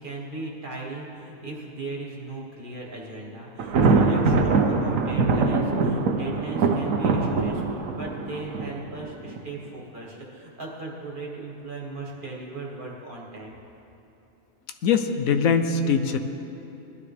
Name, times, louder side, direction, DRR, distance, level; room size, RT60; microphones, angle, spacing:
voice 1, 0.0-13.6, right 2 dB, 40° right, -3 dB, 1.8 m, -37 dB
Thunder, 3.6-9.4, right 4 dB, 75° right, 1.3 m, -23 dB
voice 2, 14.8-16.2, left 6 dB, 80° left, 7 dB, 1.1 m, -22 dB
19.5 x 12.0 x 3.4 m, 3.0 s
omnidirectional pair, 1.4 m